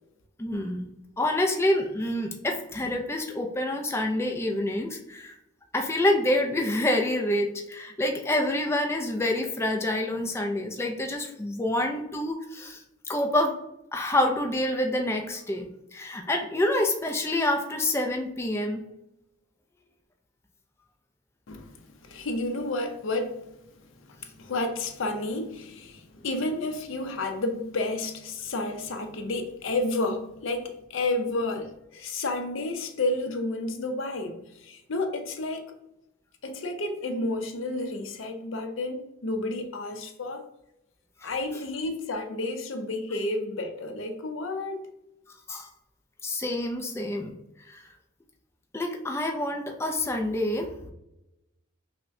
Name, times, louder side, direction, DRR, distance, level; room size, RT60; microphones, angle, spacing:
voice 1, 0.4-0.8 1.2-5.3 5.7-12.8 13.1-13.5 13.9-18.8 41.2-41.3 45.5-45.7 46.2-47.3 47.7-47.8 48.7-50.9, left 1 dB, 15° left, 0.4 m, -27 dB
voice 2, 22.0-23.4 24.1-35.7 36.4-40.4 41.2-44.9, left 2 dB, 75° left, 0.5 m, -31 dB
5.5 x 2.1 x 2.6 m
head